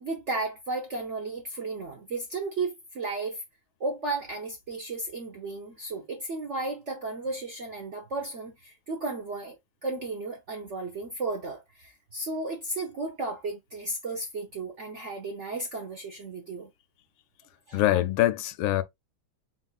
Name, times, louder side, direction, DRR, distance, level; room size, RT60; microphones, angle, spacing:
voice 1, 0.0-3.4 3.8-9.6 9.8-16.7 17.7-17.8, right 3 dB, 55° right, 0.8 m, -34 dB
voice 2, 17.7-18.8, left 14 dB, 85° left, 1.4 m, -24 dB
4.2 x 4.0 x 2.3 m
omnidirectional pair, 2.2 m